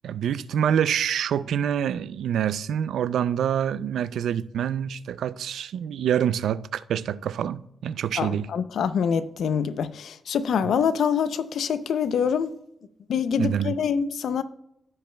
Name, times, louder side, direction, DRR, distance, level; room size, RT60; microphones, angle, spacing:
voice 1, 0.0-8.5 10.6-10.7 13.4-13.7, right 9 dB, 85° right, 0.3 m, -26 dB
voice 2, 8.2-12.5 13.1-14.4, left 7 dB, 75° left, 0.5 m, -25 dB
15.5 x 5.2 x 2.2 m
wide cardioid pair, 130°, 0 cm